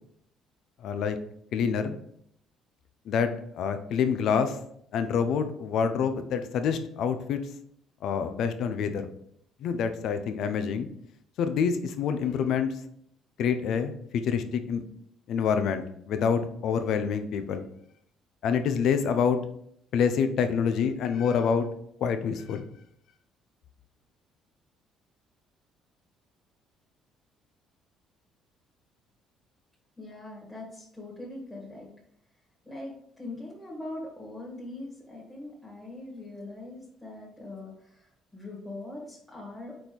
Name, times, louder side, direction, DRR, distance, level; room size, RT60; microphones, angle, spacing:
voice 1, 0.8-1.2 1.5-2.0 3.1-4.6 4.9-7.4 8.0-9.1 9.6-10.9 11.4-12.7 13.4-14.8 15.3-17.6 18.4-19.4 19.9-21.7 22.0-22.7, left 6 dB, 65° left, 8 dB, 0.6 m, -27 dB
voice 2, 30.0-31.9 32.6-32.9 33.2-39.8, left 2 dB, ahead, -3 dB, 1.6 m, -41 dB
4.4 x 4.3 x 5.1 m, 0.70 s
cardioid pair, 115°, 0 cm